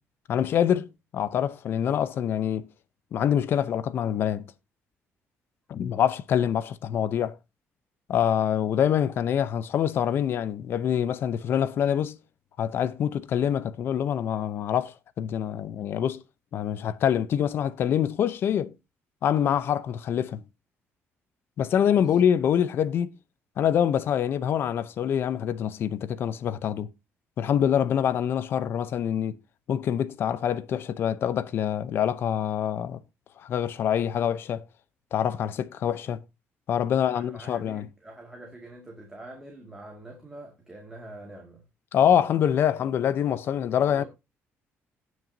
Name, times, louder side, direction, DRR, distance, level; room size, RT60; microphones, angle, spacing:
voice 1, 0.3-0.9 1.1-2.7 3.1-4.4 5.7-7.4 8.1-12.1 12.6-16.2 16.5-18.7 19.2-20.4 21.6-23.1 23.6-26.9 27.4-29.4 29.7-33.0 33.4-34.6 35.1-36.2 36.7-37.9 41.9-44.0, left 9 dB, 50° left, 0.7 m, -25 dB
voice 2, 21.8-22.2 36.9-41.6 43.8-44.0, right 1 dB, 10° right, 2.1 m, -45 dB
17.5 x 6.2 x 2.7 m
cardioid pair, 155°, 5 cm